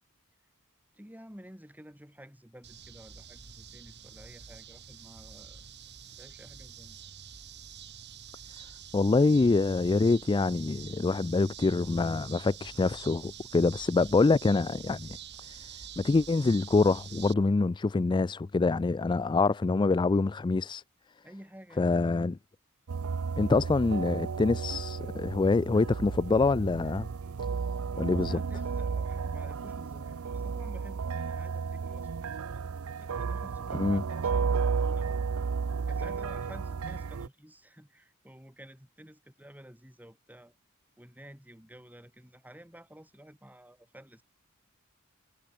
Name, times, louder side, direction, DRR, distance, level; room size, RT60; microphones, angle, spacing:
voice 1, 0.9-5.6 6.1-7.0 21.2-22.2 28.1-32.1 33.0-35.2 35.9-40.5 41.0-44.2, equal, 10° right, 6.6 m, -51 dB
sound 1, 2.6-17.3, right 8 dB, 55° right, 5.4 m, -47 dB
voice 2, 8.9-15.1 15.4-15.7 16.0-20.8 21.8-22.4 23.4-27.1 28.0-28.4 33.7-34.0, left 3 dB, 20° left, 0.3 m, -25 dB
sound 2, 22.9-37.3, right 5 dB, 85° right, 0.5 m, -33 dB
head